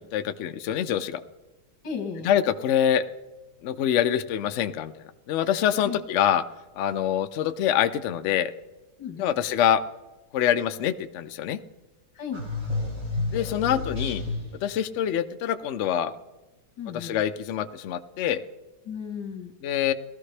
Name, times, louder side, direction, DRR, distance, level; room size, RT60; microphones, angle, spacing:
voice 1, 0.1-1.2 2.2-3.0 3.6-4.9 5.3-6.4 6.8-8.5 9.2-9.8 10.3-11.6 13.3-14.2 14.6-16.1 16.9-18.4 19.6-19.9, left 10 dB, 65° left, 10 dB, 0.7 m, -25 dB
voice 2, 1.8-2.3 5.8-6.0 9.0-9.4 12.2-12.4 16.8-17.2 18.9-19.5, left 6 dB, 85° left, 5 dB, 2.0 m, -35 dB
sound 1, 12.3-14.7, left 3 dB, 45° right, 4.8 m, -30 dB
19.0 x 13.5 x 3.3 m, 1.1 s
omnidirectional pair, 1.7 m